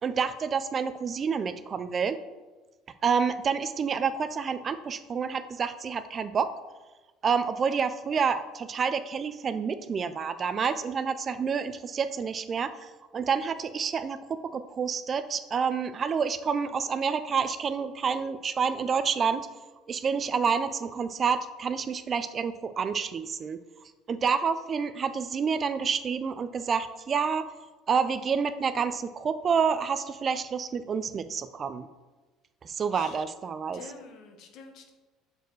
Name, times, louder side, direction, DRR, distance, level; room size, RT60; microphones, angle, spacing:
voice 1, 0.0-2.2 3.0-6.6 7.2-19.5 19.9-23.6 24.1-27.5 27.9-31.9 32.6-33.8, right 6 dB, 30° right, 11 dB, 0.3 m, -28 dB
voice 2, 33.7-34.9, left 4 dB, 60° left, 5 dB, 1.0 m, -47 dB
6.3 x 4.7 x 4.6 m, 1.2 s
cardioid pair, 130°, 0 cm